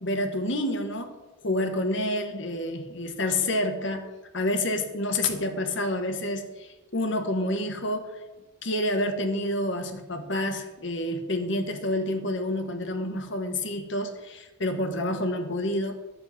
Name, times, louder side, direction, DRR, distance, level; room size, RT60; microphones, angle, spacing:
voice 1, 0.0-1.1 1.4-4.1 4.3-8.2 8.6-15.9, left 1 dB, 65° left, 6 dB, 1.6 m, -28 dB
12.0 x 6.9 x 8.5 m, 1.1 s
head